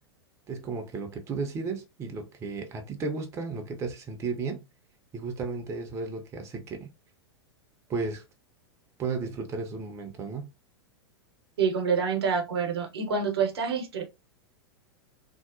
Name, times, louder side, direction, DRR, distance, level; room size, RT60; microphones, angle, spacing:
voice 1, 0.5-4.6 5.1-6.9 7.9-8.2 9.0-10.5, right 4 dB, 20° right, 0.5 m, -34 dB
voice 2, 11.6-14.0, right 6 dB, 70° right, 0.7 m, -27 dB
2.7 x 2.0 x 2.5 m
figure-of-eight pair, 95°, 14 cm